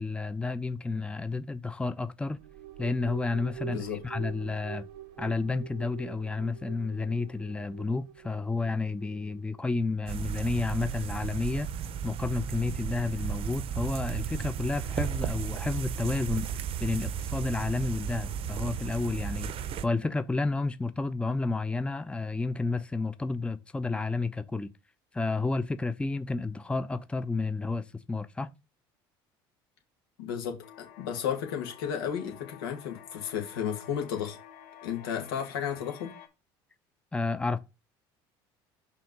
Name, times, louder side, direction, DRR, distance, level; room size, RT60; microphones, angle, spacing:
voice 1, 0.0-2.4 2.8-4.9 5.2-11.7 12.0-16.5 16.8-24.7 25.1-28.5 37.1-37.6, left 3 dB, 10° left, 0.6 m, -31 dB
sound 1, 2.3-9.8, right 13 dB, 80° right, 0.9 m, -45 dB
voice 2, 3.7-4.0 30.2-34.4 34.8-36.1, left 8 dB, 85° left, 2.1 m, -33 dB
sound 2, 10.1-19.8, right 8 dB, 50° right, 0.7 m, -34 dB
sound 3, 30.6-36.3, left 9 dB, 70° left, 1.3 m, -51 dB
5.6 x 3.6 x 5.3 m
hypercardioid pair, 80°, 12 cm